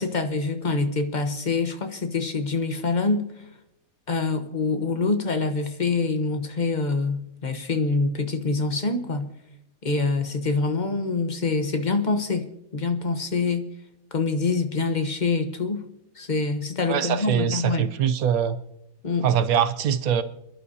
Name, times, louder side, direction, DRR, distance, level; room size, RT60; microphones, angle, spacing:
voice 1, 0.0-3.3 4.1-9.3 9.8-12.5 12.7-13.7 14.1-15.8 16.2-17.9 19.0-19.3, left 3 dB, 35° left, 1.1 m, -25 dB
voice 2, 16.9-18.6 19.2-20.2, right 8 dB, 80° right, 1.2 m, -23 dB
28.5 x 11.0 x 2.8 m
omnidirectional pair, 1.5 m